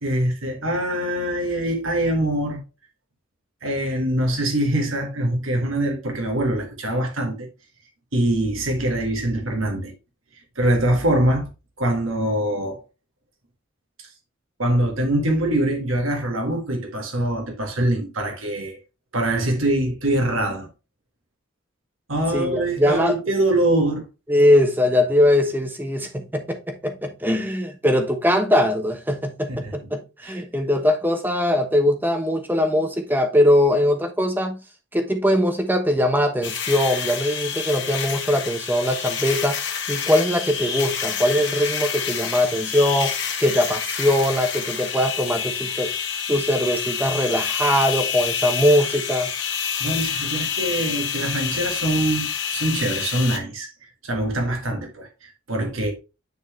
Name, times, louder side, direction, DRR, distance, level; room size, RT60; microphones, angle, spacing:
voice 1, 0.0-2.6 3.6-7.5 8.1-9.9 10.5-11.5 11.8-12.8 14.0-14.1 14.6-18.8 19.1-20.7 22.1-24.0 29.5-29.7 30.2-30.4 49.8-53.7 54.0-55.9, right 1 dB, 90° right, 1.7 m, -23 dB
voice 2, 22.3-23.1 24.3-34.6 34.9-39.6 39.9-45.9 46.3-49.3, left 1 dB, 10° right, 0.9 m, -21 dB
sound 1, 36.4-53.4, left 7 dB, 60° left, 1.4 m, -28 dB
9.3 x 4.1 x 3.1 m
head